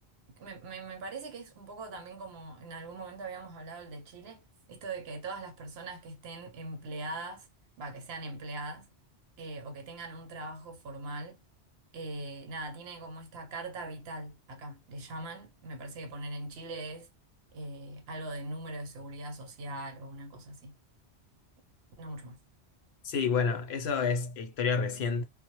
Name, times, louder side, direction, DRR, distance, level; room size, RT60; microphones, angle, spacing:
voice 1, 0.4-7.5 7.8-8.9 9.4-11.4 11.9-17.1 17.5-20.7 22.0-22.4, right 2 dB, 65° right, 0.8 m, -41 dB
voice 2, 23.0-25.2, left 5 dB, 70° left, 0.8 m, -29 dB
2.1 x 2.0 x 2.9 m
omnidirectional pair, 1.2 m